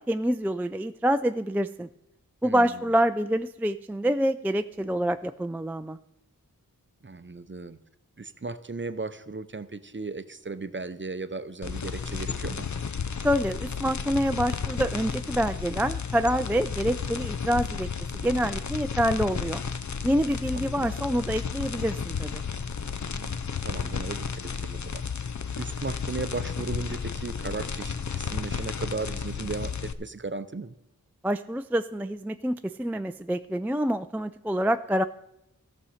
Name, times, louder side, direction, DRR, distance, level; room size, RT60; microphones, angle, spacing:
voice 1, 0.0-1.9 2.4-6.0 13.2-17.9 18.1-19.6 20.0-22.4 31.2-35.0, equal, 5° right, 10 dB, 0.3 m, -26 dB
voice 2, 2.4-2.8 7.0-7.8 8.2-12.7 20.5-20.9 23.1-23.4 23.6-25.0 25.6-30.7, right 3 dB, 35° right, 13 dB, 0.6 m, -36 dB
sound 1, 11.6-29.9, left 6 dB, 55° left, 0.6 m, -33 dB
14.5 x 6.4 x 5.6 m, 0.84 s
wide cardioid pair, 55°, 35 cm